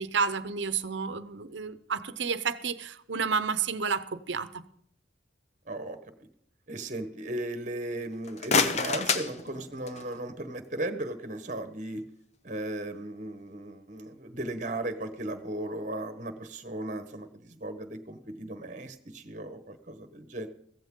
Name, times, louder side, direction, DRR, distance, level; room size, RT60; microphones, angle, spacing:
voice 1, 0.0-4.6, right 5 dB, 75° right, 0.8 m, -31 dB
voice 2, 5.7-6.0 6.7-12.0 12.4-20.5, right 1 dB, 40° right, 1.2 m, -36 dB
sound 1, 8.1-10.2, left 5 dB, 35° left, 0.8 m, -28 dB
15.5 x 14.5 x 3.8 m
head